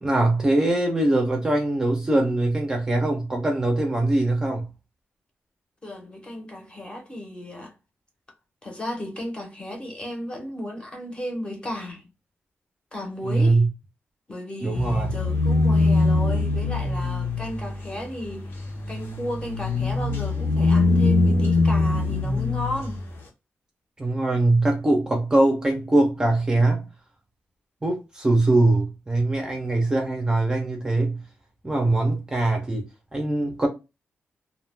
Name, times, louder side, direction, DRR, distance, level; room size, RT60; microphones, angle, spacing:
voice 1, 0.0-4.7 13.2-13.7 14.6-15.1 24.0-26.8 27.8-31.2 31.6-32.8 33.1-33.7, right 2 dB, 15° right, 0.4 m, -22 dB
voice 2, 5.8-7.7 8.6-12.1 12.9-13.6 14.3-23.0, left 1 dB, 20° left, 0.7 m, -34 dB
sound 1, 14.7-23.1, left 3 dB, 65° left, 0.7 m, -23 dB
2.3 x 2.1 x 3.1 m
wide cardioid pair, 170°, 4 cm